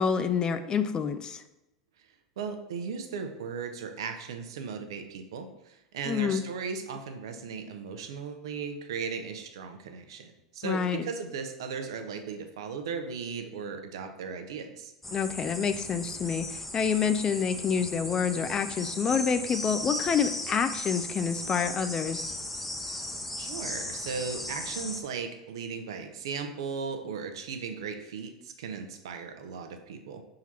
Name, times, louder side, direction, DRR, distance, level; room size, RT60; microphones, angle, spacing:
voice 1, 0.0-1.4 6.1-6.4 10.6-11.0 15.1-22.3, left 6 dB, 30° left, 10 dB, 0.4 m, -28 dB
voice 2, 2.4-14.9 23.4-30.2, right 5 dB, 70° right, 6 dB, 0.8 m, -37 dB
sound 1, 15.0-25.0, left 1 dB, 5° left, 0.9 m, -37 dB
5.8 x 3.8 x 4.4 m, 0.92 s
hypercardioid pair, 85°, 3 cm